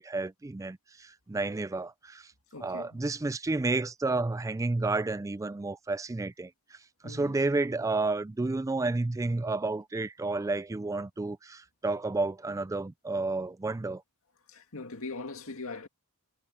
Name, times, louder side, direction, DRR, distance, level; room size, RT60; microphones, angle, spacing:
voice 1, 0.0-2.3 2.6-14.0, right 3 dB, 15° right, 0.3 m, -31 dB
voice 2, 2.5-3.1 7.0-7.4 14.5-15.9, left 3 dB, 65° left, 2.3 m, -41 dB
head